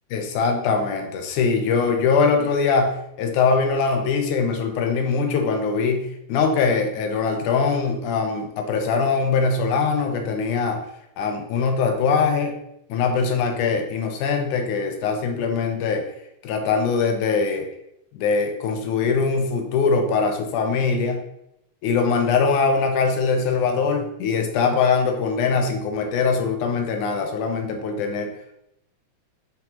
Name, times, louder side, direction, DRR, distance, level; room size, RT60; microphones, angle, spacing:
voice 1, 0.1-10.8 11.2-12.6 12.9-16.1 16.4-17.7 18.1-21.2 21.8-28.3, left 5 dB, 80° left, 4 dB, 2.4 m, -22 dB
9.3 x 5.1 x 3.0 m, 0.80 s
omnidirectional pair, 3.5 m